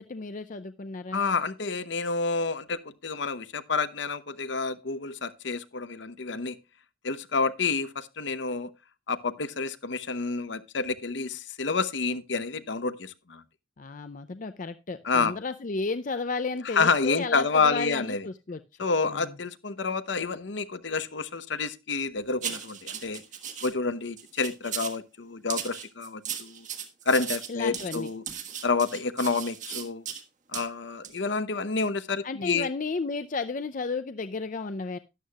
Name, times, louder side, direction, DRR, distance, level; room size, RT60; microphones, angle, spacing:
voice 1, 0.0-1.2 13.8-18.6 19.1-19.3 27.5-28.1 32.2-35.0, left 4 dB, 45° left, 0.5 m, -33 dB
voice 2, 1.1-6.6 7.0-8.7 9.1-13.4 15.0-15.3 16.6-18.2 18.8-23.2 23.6-26.6 27.1-28.2 28.6-30.0 30.5-32.7, left 4 dB, 65° left, 0.9 m, -29 dB
sound 1, 22.4-23.7 24.2-25.0 25.5-30.2 30.5-30.7 31.0-31.2, right 8 dB, 40° right, 1.5 m, -36 dB
13.0 x 11.0 x 2.3 m
head